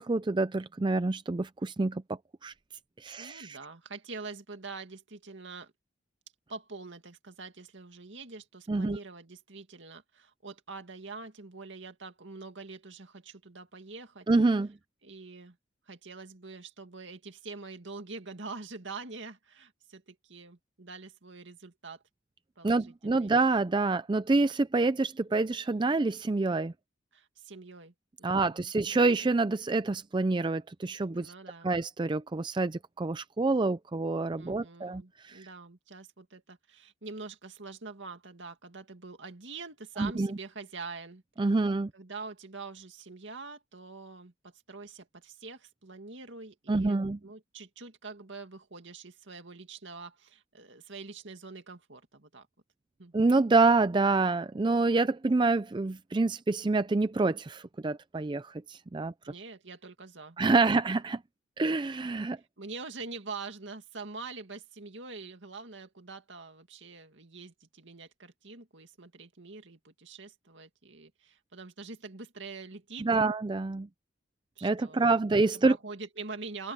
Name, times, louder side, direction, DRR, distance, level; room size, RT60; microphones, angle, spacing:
voice 1, 0.0-2.5 3.0-3.6 8.7-9.0 14.3-14.7 22.6-26.7 28.2-31.3 31.6-35.5 40.0-40.3 41.4-41.9 46.7-47.2 53.1-59.3 60.4-61.2 61.6-62.4 73.0-73.9 74.6-75.8, right 3 dB, 25° right, 0.4 m, -27 dB
voice 2, 3.2-5.7 6.5-14.3 15.0-15.6 15.9-22.0 22.6-23.3 27.1-27.9 28.2-28.7 31.1-31.7 34.4-41.2 41.9-52.5 53.0-53.1 59.3-60.7 62.6-73.1 74.6-75.2 75.6-76.7, right 4 dB, 65° right, 2.3 m, -45 dB
open air
head